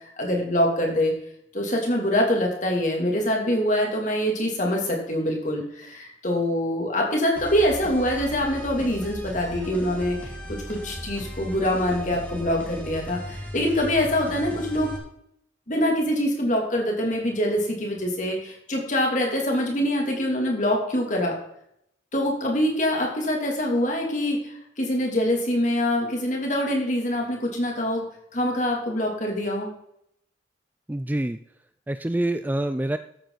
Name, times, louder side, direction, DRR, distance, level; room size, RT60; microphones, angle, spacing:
voice 1, 0.2-1.2 1.5-14.9 15.7-21.4 22.1-24.4 24.8-28.0 28.3-29.7, left 1 dB, 40° left, 0 dB, 2.8 m, -24 dB
sound 1, 7.4-15.0, equal, 10° left, 2.3 m, -37 dB
voice 2, 30.9-31.4 31.9-33.0, right 1 dB, 10° right, 11 dB, 0.3 m, -26 dB
13.0 x 9.1 x 4.0 m, 0.74 s
head